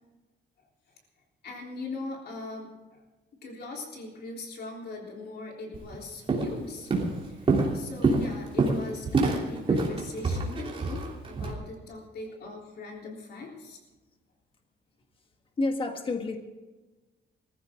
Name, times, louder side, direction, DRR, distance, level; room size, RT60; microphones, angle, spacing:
voice 1, 1.4-3.0 3.4-6.9 7.3-13.8, left 3 dB, 60° left, 0 dB, 3.6 m, -40 dB
Walk footsteps, 5.7-5.9 6.3-6.6 6.9-11.5, right 3 dB, 30° right, 3.1 m, -26 dB
voice 2, 15.6-16.4, left 2 dB, 30° left, 4 dB, 1.6 m, -29 dB
20.5 x 14.5 x 3.7 m, 1.2 s
cardioid pair, 170°, 18 cm